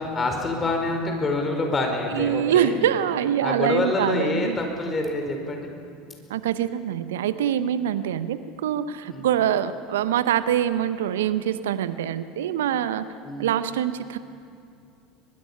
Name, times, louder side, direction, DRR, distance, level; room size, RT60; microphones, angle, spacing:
voice 1, 0.0-2.8 3.4-5.7 9.1-9.2 13.2-13.5, left 2 dB, 25° left, 3 dB, 4.6 m, -26 dB
voice 2, 2.1-4.6 6.3-13.0 13.4-14.2, right 10 dB, 70° right, 14 dB, 0.7 m, -24 dB
23.0 x 21.5 x 5.6 m, 2.5 s
figure-of-eight pair, 75°, 0 cm